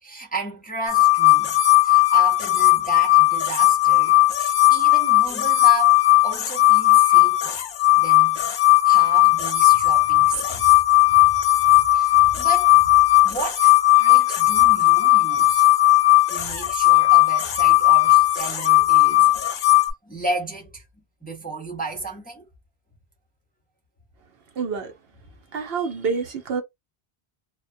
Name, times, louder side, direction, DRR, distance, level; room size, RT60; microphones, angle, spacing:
voice 1, 0.0-7.6 8.0-8.5 8.8-10.8 11.1-13.0 13.2-15.7 16.3-19.6 20.0-20.8 21.2-22.5, right 3 dB, 10° left, 0.6 m, -33 dB
sound 1, 0.9-19.9, left 16 dB, 60° left, 0.6 m, -17 dB
voice 2, 24.6-24.9 25.5-26.6, right 5 dB, 65° right, 0.9 m, -27 dB
2.3 x 2.2 x 2.5 m
omnidirectional pair, 1.1 m